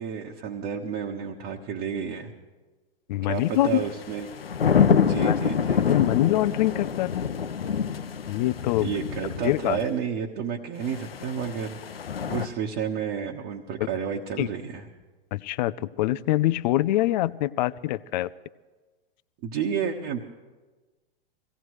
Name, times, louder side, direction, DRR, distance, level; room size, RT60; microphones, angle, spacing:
voice 1, 0.0-2.3 3.3-4.3 5.0-6.0 8.8-11.8 12.3-14.9 19.4-20.2, right 7 dB, 45° right, -1 dB, 1.4 m, -31 dB
voice 2, 3.1-3.8 5.2-5.4 5.9-7.3 8.3-8.9 9.4-9.8 14.4-14.5 15.3-18.3, left 15 dB, 50° left, 18 dB, 0.5 m, -24 dB
sound 1, 3.6-9.8 10.9-12.5, left 7 dB, 85° left, 0.8 m, -26 dB
23.5 x 17.0 x 3.2 m, 1.3 s
hypercardioid pair, 100°, 29 cm